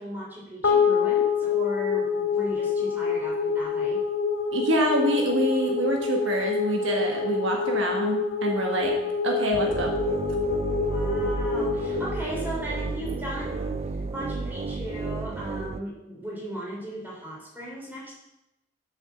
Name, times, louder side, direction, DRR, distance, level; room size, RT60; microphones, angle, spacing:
voice 1, 0.0-4.0 10.8-18.1, right 1 dB, 10° right, -6 dB, 3.7 m, -37 dB
sound 1, 0.6-13.2, left 5 dB, 75° left, 2.1 m, -26 dB
voice 2, 4.5-8.9 9.2-9.9, equal, 70° right, 1 dB, 1.5 m, -26 dB
sound 2, 9.5-15.8, right 3 dB, 30° right, 0.3 m, -32 dB
7.2 x 6.8 x 7.0 m, 0.90 s
head